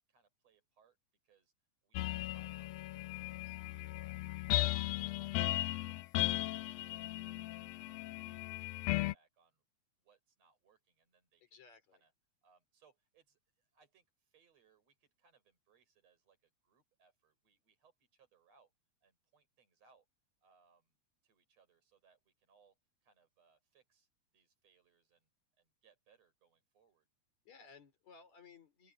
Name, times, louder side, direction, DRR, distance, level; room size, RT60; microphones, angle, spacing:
voice 1, 0.1-1.0 1.2-1.5 1.8-6.4 6.8-9.6 10.0-11.6 11.9-12.1 12.4-18.7 19.0-20.1 20.4-21.0 21.2-24.1 24.3-25.3 25.6-27.1, right 5 dB, 55° right, 7.4 m, -72 dB
sound 1, 1.9-9.1, left 17 dB, 80° left, 1.5 m, -36 dB
voice 2, 11.5-12.0 27.5-28.9, left 5 dB, 65° left, 5.3 m, -59 dB
open air
omnidirectional pair, 3.5 m